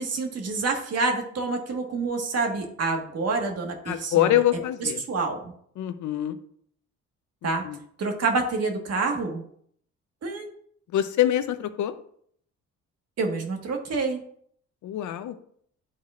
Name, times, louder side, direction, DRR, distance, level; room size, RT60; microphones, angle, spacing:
voice 1, 0.0-4.4 4.8-5.4 7.4-7.6 8.0-9.4 10.2-10.5 13.2-14.2, right 3 dB, 55° right, 3 dB, 1.6 m, -27 dB
voice 2, 3.9-5.0 5.8-6.3 7.6-7.8 10.9-11.9 14.8-15.3, left 12 dB, 75° left, 11 dB, 0.7 m, -24 dB
11.0 x 4.3 x 2.5 m, 0.63 s
cardioid pair, 90°, 30 cm